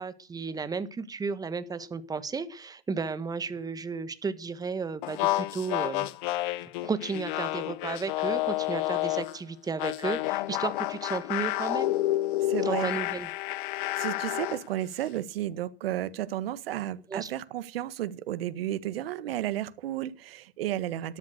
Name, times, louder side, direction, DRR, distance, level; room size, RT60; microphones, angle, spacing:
voice 1, 0.0-6.1 6.8-11.9 12.7-13.3 17.1-17.3, right 5 dB, 10° right, 1.6 m, -33 dB
sound 1, 5.0-9.4 9.8-14.6, left 17 dB, 50° left, 1.1 m, -30 dB
voice 2, 12.5-12.9 13.7-21.2, right 12 dB, 65° right, 1.7 m, -33 dB
13.0 x 12.0 x 6.6 m
hypercardioid pair, 125°, 32 cm